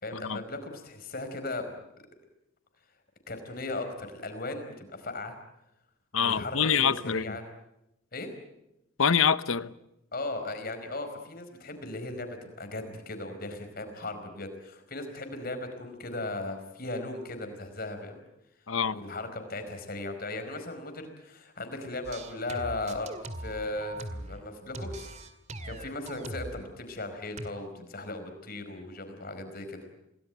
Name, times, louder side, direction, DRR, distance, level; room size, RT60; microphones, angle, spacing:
voice 1, 0.0-1.8 3.3-5.4 6.1-7.4 8.1-8.3 10.1-18.2 18.9-25.1 25.6-29.9, left 2 dB, 45° left, 4.8 m, -37 dB
voice 2, 6.1-7.4 9.0-9.7 18.7-19.0, left 7 dB, 85° left, 0.9 m, -25 dB
sound 1, 22.0-24.4 24.7-26.6 27.4-27.5, right 1 dB, 35° right, 2.1 m, -40 dB
28.0 x 19.0 x 9.2 m
head